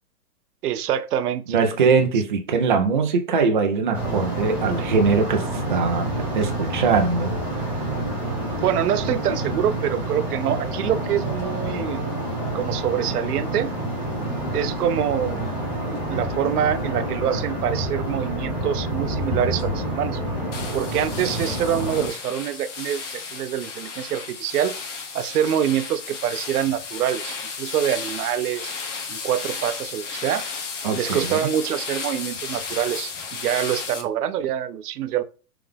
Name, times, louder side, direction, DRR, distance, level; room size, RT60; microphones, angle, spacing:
voice 1, 0.6-1.5 8.2-12.0 12.5-13.7 14.5-15.6 15.9-20.2 20.7-24.8 25.1-28.7 29.1-30.4 30.9-35.2, right 10 dB, 85° right, 0.6 m, -25 dB
voice 2, 1.5-5.4 5.7-6.1 6.3-7.3 30.8-31.5, right 5 dB, 35° right, 0.4 m, -21 dB
sound 1, 3.9-22.1, right 1 dB, 10° left, 1.1 m, -28 dB
sound 2, 20.5-34.0, left 5 dB, 55° left, 0.9 m, -34 dB
3.4 x 3.4 x 3.5 m
hypercardioid pair, 175°, 44 cm